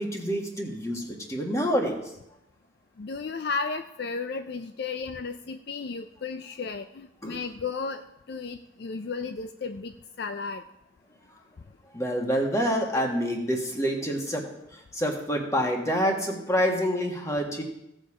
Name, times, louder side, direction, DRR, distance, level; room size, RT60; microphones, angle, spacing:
voice 1, 0.0-2.0 7.2-7.4 11.9-17.6, equal, 15° left, 1 dB, 1.5 m, -27 dB
voice 2, 3.0-10.6, left 4 dB, 55° left, 8 dB, 0.4 m, -34 dB
16.5 x 6.6 x 5.0 m, 0.85 s
head